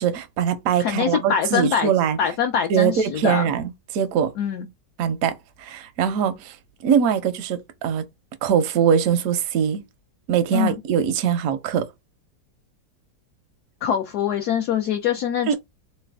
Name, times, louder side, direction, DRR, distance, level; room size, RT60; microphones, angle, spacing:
voice 1, 0.0-2.2 2.7-4.3 5.0-6.6 6.8-8.0 8.4-9.8 10.3-11.9 15.5-15.6, right 8 dB, 70° right, 0.8 m, -22 dB
voice 2, 0.8-1.9 2.2-3.4 4.4-4.7 10.5-10.7 13.8-15.5, left 8 dB, 70° left, 1.0 m, -23 dB
3.2 x 2.1 x 3.4 m
omnidirectional pair, 2.0 m